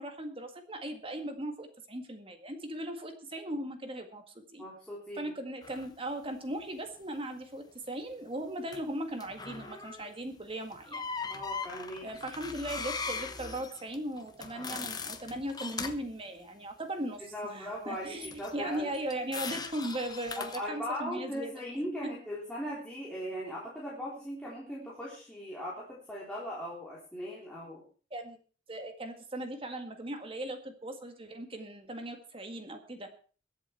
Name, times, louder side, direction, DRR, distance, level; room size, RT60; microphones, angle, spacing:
voice 1, 0.0-4.6 5.2-11.0 12.0-21.5 28.1-28.4 28.7-33.1, right 1 dB, 30° right, 6 dB, 1.9 m, -38 dB
voice 2, 4.6-5.3 11.3-12.1 17.2-18.9 20.4-27.8, equal, 5° left, -6 dB, 3.5 m, -39 dB
sound 1, 5.6-5.9 8.7-8.8 9.2-10.1 10.7-16.1 18.2-20.7, left 4 dB, 20° left, 1.1 m, -40 dB
22.0 x 8.1 x 4.5 m, 0.39 s
head